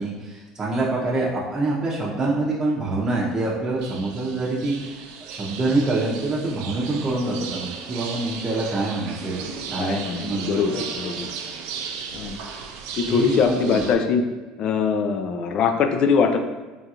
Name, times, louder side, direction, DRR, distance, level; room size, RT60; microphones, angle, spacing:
voice 1, 0.0-9.4 9.7-10.7 13.1-13.9, right 2 dB, 30° right, -5 dB, 0.7 m, -26 dB
sound 1, 3.8-13.9, right 6 dB, 75° right, 0.3 m, -36 dB
voice 2, 9.8-11.3 12.1-12.4 13.0-14.2 14.6-16.4, left 5 dB, 50° left, 6 dB, 0.4 m, -22 dB
3.7 x 2.4 x 2.8 m, 1.2 s
supercardioid pair, 90°, 2 cm